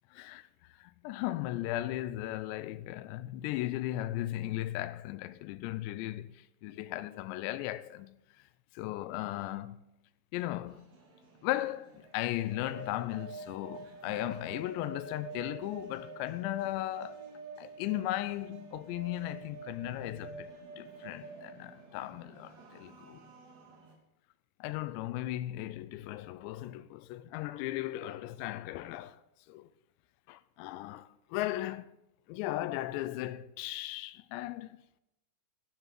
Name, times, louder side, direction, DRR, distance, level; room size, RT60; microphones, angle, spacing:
voice 1, 0.1-8.1 8.7-9.8 10.3-10.8 11.4-17.3 17.6-23.2 24.6-29.2 29.5-29.7 30.3-32.0 32.3-34.8, left 15 dB, 80° left, 2.7 m, -37 dB
sound 1, 10.7-23.9, right 4 dB, 60° right, 4.7 m, -48 dB
12.5 x 7.0 x 9.3 m
omnidirectional pair, 5.3 m